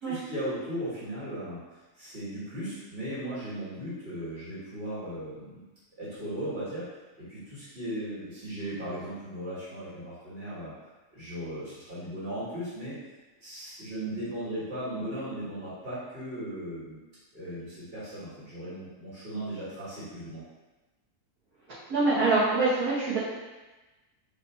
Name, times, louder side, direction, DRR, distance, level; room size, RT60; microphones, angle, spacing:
voice 1, 0.0-1.6 1.9-5.6 6.0-6.9 7.2-10.7 11.1-13.0 13.4-17.0 17.3-20.4, right 1 dB, 40° right, -12 dB, 1.7 m, -37 dB
voice 2, 21.9-23.2, right 3 dB, 80° right, -14 dB, 2.0 m, -24 dB
4.4 x 2.8 x 4.2 m, 1.2 s
omnidirectional pair, 1.6 m